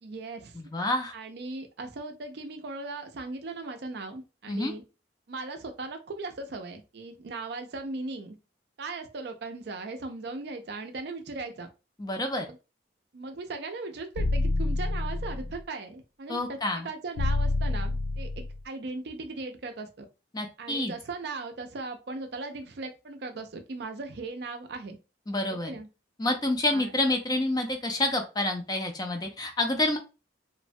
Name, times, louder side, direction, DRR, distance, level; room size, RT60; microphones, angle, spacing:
voice 1, 0.0-0.6 1.1-4.8 5.3-8.4 8.8-11.7 12.5-12.6 13.1-16.6 16.8-20.1 20.6-25.0 25.5-25.9 26.7-26.9, right 3 dB, 60° right, 6 dB, 0.4 m, -38 dB
voice 2, 0.6-1.1 4.5-4.7 12.0-12.5 16.3-16.9 20.3-20.9 25.3-25.8 26.2-30.0, left 1 dB, 20° left, 4 dB, 0.4 m, -28 dB
sound 1, 14.2-15.6 17.2-18.6, left 2 dB, 85° left, 0.4 m, -28 dB
3.1 x 2.1 x 2.6 m, 0.30 s
head